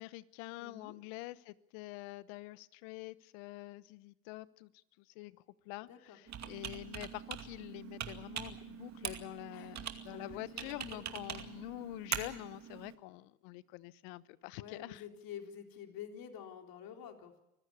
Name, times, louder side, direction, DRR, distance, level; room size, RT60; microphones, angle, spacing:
voice 1, 0.0-4.7 5.1-5.4 5.6-15.0, left 19 dB, 70° left, 1.1 m, -46 dB
voice 2, 0.6-1.0 5.8-6.2 9.5-11.1 14.5-17.4, left 8 dB, 50° left, 3.9 m, -49 dB
Computer keyboard, 6.3-12.9, right 9 dB, 40° right, 2.4 m, -43 dB
25.0 x 15.0 x 8.5 m
hypercardioid pair, 85°, 43 cm